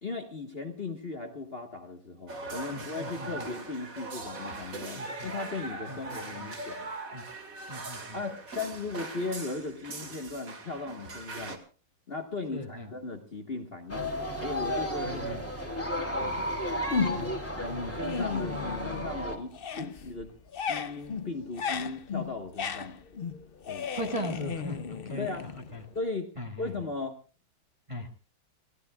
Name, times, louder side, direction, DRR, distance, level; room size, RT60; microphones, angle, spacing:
voice 1, 0.0-6.9 8.1-11.6 12.1-14.1 14.4-15.3 15.8-16.5 17.6-20.3 20.7-23.0 23.7-23.9 25.2-25.5 25.9-26.3 26.6-27.2, left 3 dB, 30° left, 5 dB, 1.5 m, -37 dB
sound 1, 2.3-11.6, right 2 dB, 45° right, 2.5 m, -40 dB
voice 2, 2.7-3.5 4.9-5.3 5.9-6.5 7.1-7.2 7.7-8.2 12.5-12.9 15.0-15.4 17.1-17.3 17.7-18.0 23.9-25.3 25.7-25.8 26.4-26.7 27.9-28.1, equal, 15° right, 1 dB, 1.6 m, -38 dB
sound 2, 13.9-19.4, equal, 5° left, 2.3 m, -33 dB
sound 3, 16.9-17.5 17.8-19.2 19.5-26.0, left 6 dB, 80° left, 0.5 m, -35 dB
29.5 x 15.5 x 2.4 m, 0.37 s
omnidirectional pair, 2.1 m